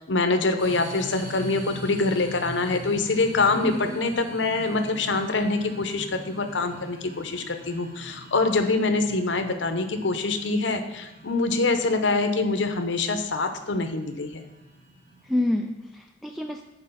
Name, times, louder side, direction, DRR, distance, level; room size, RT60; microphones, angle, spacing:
voice 1, 0.0-14.4, left 3 dB, 75° left, 7 dB, 0.8 m, -25 dB
sound 1, 0.6-15.7, right 1 dB, 45° right, 2.0 m, -42 dB
voice 2, 3.6-4.0 15.2-16.6, left 1 dB, ahead, 3 dB, 0.3 m, -28 dB
8.8 x 5.0 x 5.6 m, 0.96 s
head